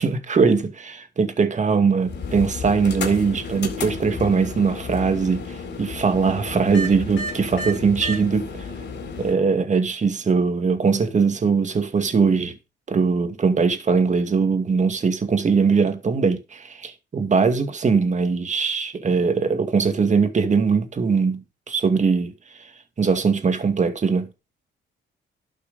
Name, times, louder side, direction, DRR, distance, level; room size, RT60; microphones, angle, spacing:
voice 1, 0.0-5.4 5.8-8.7 9.2-12.5 12.9-22.3 23.0-24.3, right 5 dB, 35° right, 2.2 m, -21 dB
sound 1, 2.0-9.3, left 3 dB, 60° left, 4.1 m, -32 dB
12.0 x 6.6 x 5.2 m
cardioid pair, 90°, 20 cm